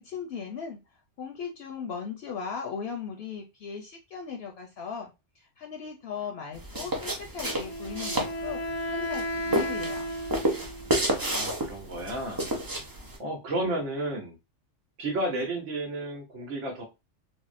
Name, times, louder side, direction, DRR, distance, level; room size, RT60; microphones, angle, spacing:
voice 1, 0.0-10.1, left 6 dB, 65° left, 2 dB, 0.7 m, -38 dB
sound 1, 6.5-13.2, right 1 dB, 30° right, 0.4 m, -31 dB
Wind instrument woodwind instrument, 7.4-11.0, equal, 80° left, 1.0 m, -34 dB
voice 2, 11.1-12.5 13.2-14.4 15.0-16.8, right 1 dB, 85° right, 0 dB, 1.2 m, -32 dB
3.5 x 2.1 x 2.5 m, 0.25 s
omnidirectional pair, 1.2 m